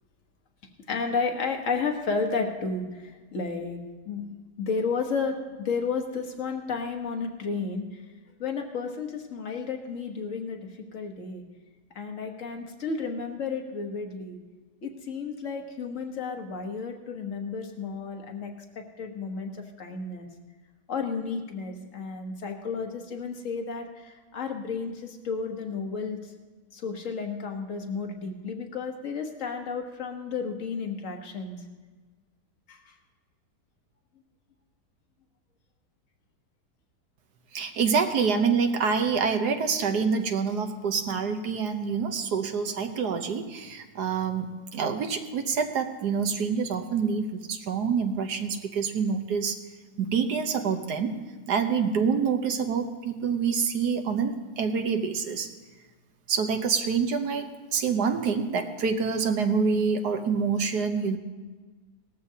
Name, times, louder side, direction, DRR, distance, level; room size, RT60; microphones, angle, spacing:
voice 1, 0.9-3.8 4.0-7.9 8.4-10.6 10.9-11.4 11.9-14.4 14.8-20.3 20.9-26.2 26.7-31.6 32.7-32.9, left 4 dB, 50° left, 4 dB, 1.5 m, -32 dB
voice 2, 37.5-49.6 50.0-51.2 51.5-55.5 56.3-61.2, right 5 dB, 75° right, 6 dB, 1.5 m, -26 dB
18.5 x 14.0 x 2.8 m, 1.3 s
omnidirectional pair, 1.8 m